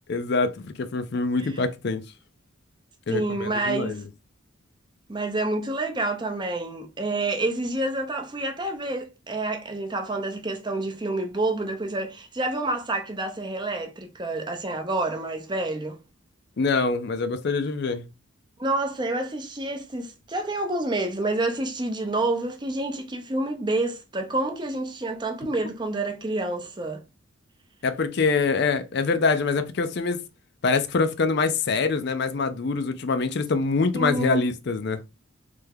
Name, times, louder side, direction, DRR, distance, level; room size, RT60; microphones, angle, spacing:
voice 1, 0.1-2.0 3.1-4.0 16.6-18.1 27.8-30.2 30.6-35.0, left 4 dB, 55° left, 0.4 m, -25 dB
voice 2, 3.1-4.0 5.1-16.0 18.6-27.0 33.9-34.5, right 2 dB, 20° right, 0.6 m, -28 dB
3.4 x 3.3 x 3.4 m
head